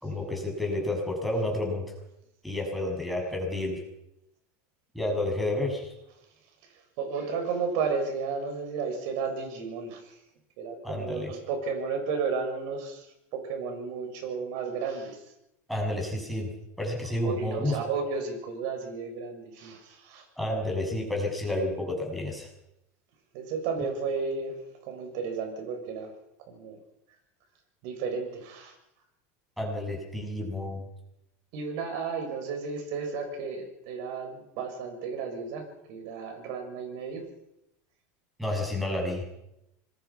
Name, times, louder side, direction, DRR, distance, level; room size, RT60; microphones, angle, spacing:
voice 1, 0.0-1.9 2.4-3.8 4.9-5.9 10.8-11.3 15.7-16.5 16.8-17.8 20.4-22.5 29.6-30.8 38.4-39.2, left 1 dB, ahead, -1 dB, 7.2 m, -30 dB
voice 2, 7.0-10.1 10.6-13.0 13.3-15.2 17.2-20.2 23.3-24.6 24.9-26.1 26.5-26.8 27.8-28.7 31.5-37.2, right 5 dB, 65° right, 5 dB, 6.8 m, -33 dB
25.5 x 21.0 x 5.9 m, 0.84 s
supercardioid pair, 140°, 8 cm